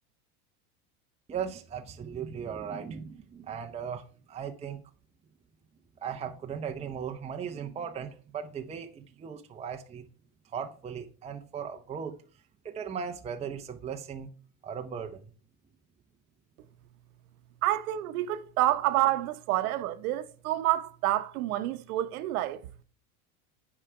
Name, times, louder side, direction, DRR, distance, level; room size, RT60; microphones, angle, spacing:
voice 1, 1.3-4.8 6.0-10.1 10.5-12.2 12.6-14.3 14.6-15.2, right 7 dB, 15° right, 0.7 m, -37 dB
voice 2, 17.6-22.6, right 14 dB, 85° right, 1.0 m, -28 dB
9.0 x 4.9 x 4.8 m
supercardioid pair, 130°, 42 cm